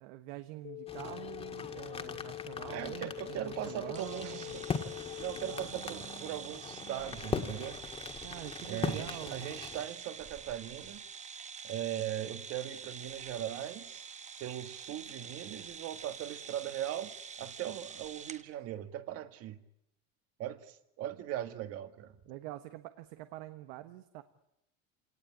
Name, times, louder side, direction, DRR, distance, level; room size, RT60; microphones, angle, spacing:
voice 1, 0.0-4.6 5.5-7.1 8.2-9.5 22.3-24.2, right 15 dB, 80° right, 10 dB, 1.4 m, -46 dB
sound 1, 0.6-5.6, left 20 dB, 60° left, 0.9 m, -44 dB
sound 2, 0.9-9.8, left 5 dB, 20° left, 1.8 m, -41 dB
voice 2, 2.7-4.6 5.2-7.8 8.6-11.0 11.6-14.0 14.4-19.6 20.4-22.2, right 12 dB, 50° right, 9 dB, 1.8 m, -39 dB
sound 3, 3.9-18.4, right 6 dB, 25° right, 1.1 m, -46 dB
28.0 x 18.5 x 8.7 m, 0.85 s
cardioid pair, 145°, 30 cm